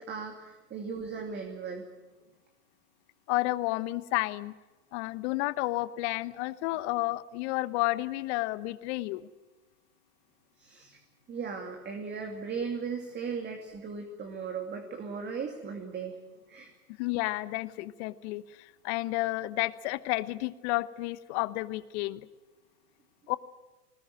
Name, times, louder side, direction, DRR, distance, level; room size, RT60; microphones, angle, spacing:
voice 1, 0.0-1.9 10.6-11.0 11.3-16.2 16.5-16.7, right 5 dB, 20° right, 3 dB, 2.5 m, -37 dB
voice 2, 3.3-4.5 4.9-9.3 17.0-22.2 23.3-23.4, left 19 dB, 45° left, 15 dB, 1.2 m, -31 dB
20.5 x 19.5 x 9.0 m, 1.2 s
hypercardioid pair, 120°, 47 cm